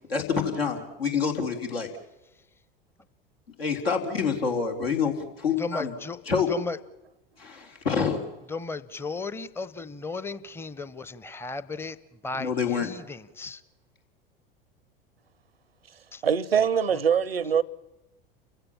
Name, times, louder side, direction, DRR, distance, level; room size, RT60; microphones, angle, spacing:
voice 1, 0.1-1.9 3.6-5.9 6.2-6.5 7.4-8.3 12.3-12.9, left 6 dB, 80° left, 3.8 m, -27 dB
voice 2, 5.6-6.2 6.5-6.8 8.5-12.0 12.2-12.5 12.8-13.6 16.1-16.2, left 3 dB, 10° left, 0.8 m, -35 dB
voice 3, 16.2-17.6, right 7 dB, 90° right, 0.7 m, -23 dB
29.5 x 16.0 x 7.3 m
figure-of-eight pair, 80°, 29 cm